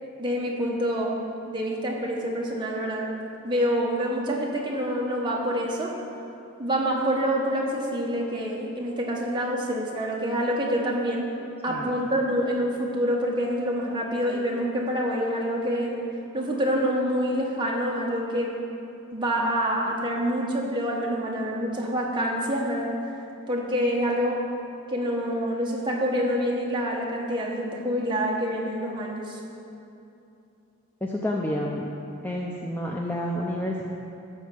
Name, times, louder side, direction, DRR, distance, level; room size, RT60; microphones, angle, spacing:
voice 1, 0.0-1.1 1.5-3.0 3.4-5.9 6.6-11.3 11.6-16.0 16.3-18.6 19.1-22.9 23.5-24.4 24.9-29.4, equal, 20° right, -3 dB, 1.3 m, -26 dB
voice 2, 31.0-31.9 32.2-33.8, left 1 dB, 10° left, -2 dB, 0.5 m, -29 dB
12.5 x 4.7 x 7.7 m, 2.8 s
head